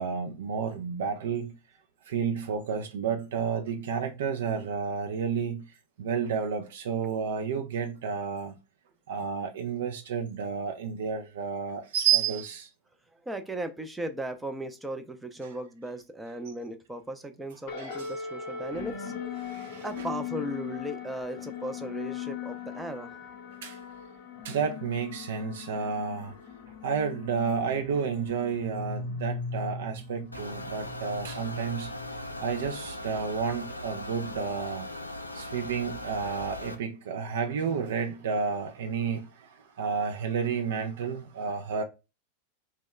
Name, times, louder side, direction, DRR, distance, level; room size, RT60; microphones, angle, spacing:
voice 1, 0.0-1.5 2.1-5.6 6.0-8.6 9.1-12.7 17.8-18.1 19.4-20.1 23.6-23.8 24.4-26.4 26.8-31.9 32.4-34.9 35.3-41.8, right 6 dB, 60° right, 0.4 m, -31 dB
voice 2, 13.2-19.6 19.8-23.2, right 1 dB, 5° right, 0.5 m, -37 dB
sound 1, 17.7-32.4, left 6 dB, 45° left, 0.7 m, -39 dB
sound 2, 30.3-36.7, left 1 dB, 85° left, 0.4 m, -39 dB
3.0 x 2.2 x 3.5 m
figure-of-eight pair, 90°, 0 cm